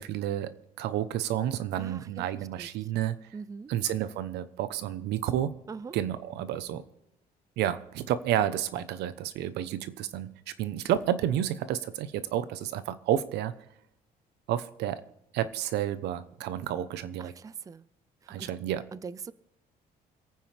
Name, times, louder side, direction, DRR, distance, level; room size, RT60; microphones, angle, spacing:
voice 1, 0.0-3.3 3.7-5.5 5.9-6.8 7.6-13.5 14.5-15.0 15.3-17.3 18.3-18.8, right 11 dB, 80° right, 14 dB, 1.0 m, -30 dB
voice 2, 1.7-2.3 2.6-2.7 3.3-3.7 5.7-6.0 17.2-17.9 18.2-18.5 18.9-19.3, right 5 dB, 20° right, 18 dB, 0.4 m, -42 dB
27.0 x 9.2 x 3.4 m, 0.82 s
cardioid pair, 110°, 17 cm